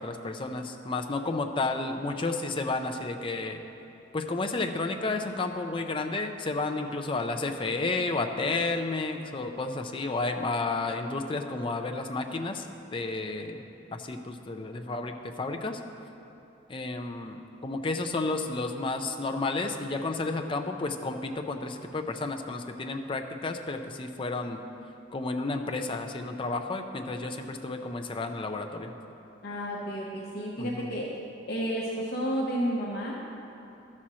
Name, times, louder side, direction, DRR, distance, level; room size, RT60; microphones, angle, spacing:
voice 1, 0.0-3.6 4.1-12.7 12.9-13.6 13.9-15.8 16.7-24.6 25.1-28.9 30.6-30.9, left 3 dB, 25° left, 4 dB, 0.5 m, -31 dB
voice 2, 29.4-31.0 31.5-33.2, equal, 55° left, -4 dB, 0.9 m, -31 dB
13.0 x 4.3 x 6.2 m, 2.9 s
head